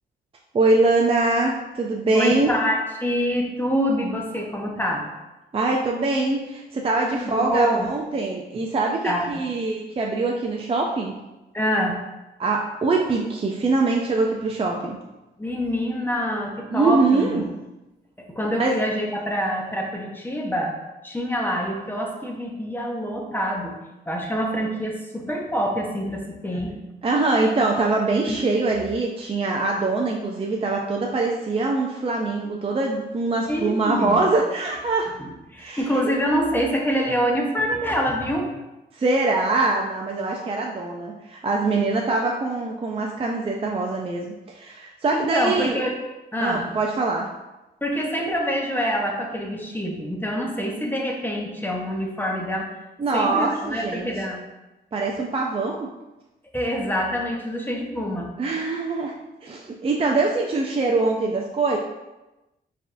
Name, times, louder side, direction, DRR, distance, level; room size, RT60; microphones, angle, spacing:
voice 1, 0.5-2.6 5.5-11.1 12.4-15.0 16.7-17.5 18.6-18.8 27.0-35.1 35.6-35.9 38.9-45.7 46.4-47.3 53.0-54.1 54.9-55.9 58.4-61.8, right 3 dB, 30° right, 0 dB, 0.4 m, -23 dB
voice 2, 2.1-5.0 7.1-7.9 9.0-9.5 11.5-12.0 15.4-17.4 18.3-20.8 21.0-23.7 24.1-26.7 28.3-28.4 33.5-34.3 35.2-38.5 45.1-45.9 46.3-46.6 47.8-52.7 53.1-54.4 56.5-58.3, equal, 10° left, 0 dB, 0.8 m, -26 dB
4.5 x 3.5 x 2.6 m, 1.0 s
cardioid pair, 90°, 19 cm